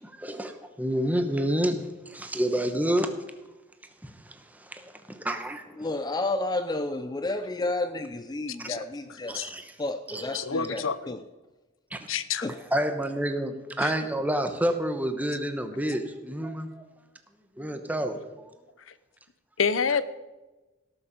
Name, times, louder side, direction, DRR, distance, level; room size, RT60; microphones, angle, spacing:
voice 1, 0.0-3.1 4.0-5.9 8.6-8.7 9.3-9.8 10.1-10.4 11.9-12.0 12.7-16.8 17.6-18.5, right 1 dB, 10° right, 7 dB, 1.0 m, -29 dB
voice 2, 5.8-9.4 9.8-11.2 12.4-12.6, left 2 dB, 20° left, 10 dB, 0.4 m, -31 dB
voice 3, 8.7-9.5 10.3-11.1 12.1-12.5 13.8-13.9 19.6-20.0, left 6 dB, 90° left, 15 dB, 0.7 m, -28 dB
17.5 x 7.1 x 5.2 m, 1.1 s
head